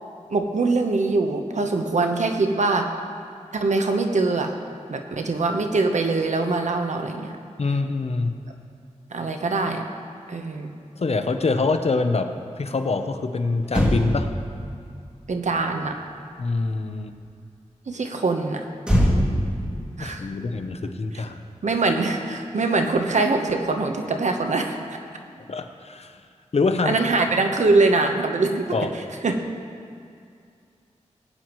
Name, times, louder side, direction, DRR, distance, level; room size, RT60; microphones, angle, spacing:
voice 1, 0.3-2.9 3.5-4.5 4.9-7.3 9.1-9.9 10.3-10.7 15.3-15.9 17.9-18.7 20.0-20.3 21.6-24.8 26.8-28.8 29.2-29.4, right 3 dB, 70° right, 4 dB, 1.0 m, -23 dB
voice 2, 7.6-8.4 11.0-14.3 16.4-17.1 20.0-21.4 25.5-26.2 26.5-27.0 28.7-28.9, left 3 dB, 55° left, 7 dB, 0.7 m, -25 dB
Motor vehicle (road), 13.6-17.2 18.8-21.4 21.7-21.9, equal, 10° right, 2.4 m, -26 dB
18.5 x 9.1 x 3.1 m, 2.4 s
wide cardioid pair, 65°, 13 cm